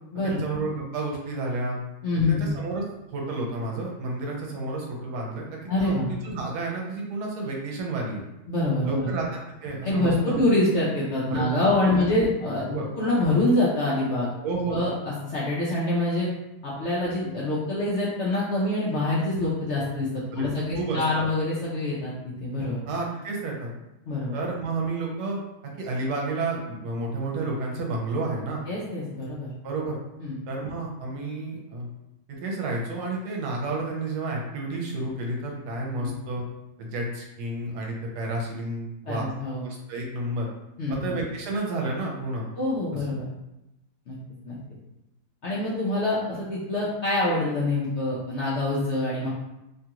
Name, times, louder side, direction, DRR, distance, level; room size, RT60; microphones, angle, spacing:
voice 1, 0.2-1.8 2.1-2.8 3.1-6.0 6.2-8.2 8.8-10.4 11.3-12.0 12.7-12.9 14.4-14.8 20.3-21.3 22.9-23.7 24.3-25.4 25.8-28.6 29.6-30.0 30.5-31.9 32.3-36.4 36.8-39.3 39.6-40.5 40.9-42.5 42.9-43.0, right 2 dB, 80° right, -1 dB, 1.2 m, -31 dB
voice 2, 2.0-2.5 5.7-6.1 8.5-9.1 9.8-14.3 14.7-16.3 16.6-22.1 22.4-22.8 24.1-24.3 28.7-29.5 30.2-30.4 36.0-36.1 39.1-39.6 40.8-41.1 42.6-43.3 44.1-44.2 44.4-44.6 45.4-49.3, left 2 dB, 65° left, -7 dB, 0.7 m, -25 dB
3.0 x 2.4 x 2.8 m, 0.92 s
omnidirectional pair, 1.8 m